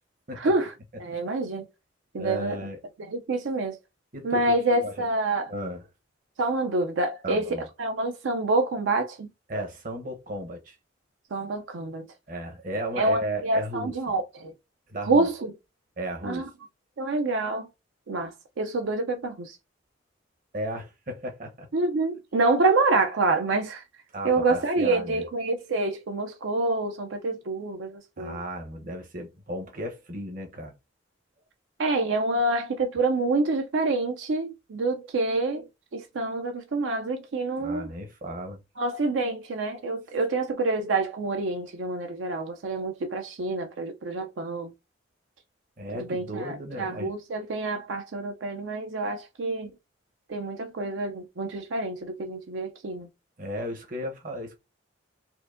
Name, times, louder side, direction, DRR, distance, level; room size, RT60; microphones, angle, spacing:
voice 1, 0.4-0.7 1.0-1.7 2.1-2.6 3.1-3.8 4.2-5.5 6.4-9.3 11.3-12.1 13.0-14.5 15.1-15.5 16.2-16.4 17.0-17.7 18.1-19.6 21.7-23.8 24.2-28.4 31.8-35.7 35.9-37.9 38.8-44.7 45.9-49.7 50.3-53.1, right 2 dB, 75° right, 0.5 m, -27 dB
voice 2, 2.2-2.8 4.1-5.1 5.5-5.9 7.2-7.7 9.5-10.8 12.3-14.1 14.9-15.3 16.0-16.5 20.5-21.7 24.1-25.2 28.2-30.7 37.6-38.6 45.8-47.1 53.4-54.6, equal, 45° right, 0.9 m, -35 dB
4.4 x 2.6 x 2.5 m
head